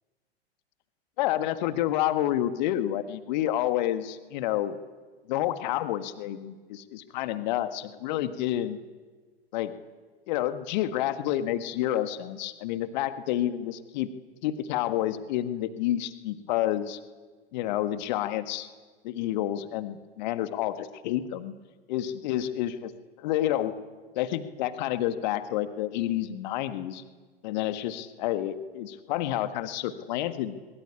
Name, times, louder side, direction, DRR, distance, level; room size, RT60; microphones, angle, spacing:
voice 1, 1.2-4.8 5.3-8.8 9.5-9.7 10.3-14.1 14.4-17.0 17.5-18.7 19.0-21.5 21.9-22.9 23.2-23.7 24.1-27.0 27.4-30.6, left 13 dB, 45° left, 11 dB, 1.6 m, -29 dB
22.0 x 22.0 x 8.7 m, 1.4 s
figure-of-eight pair, 95°, 32 cm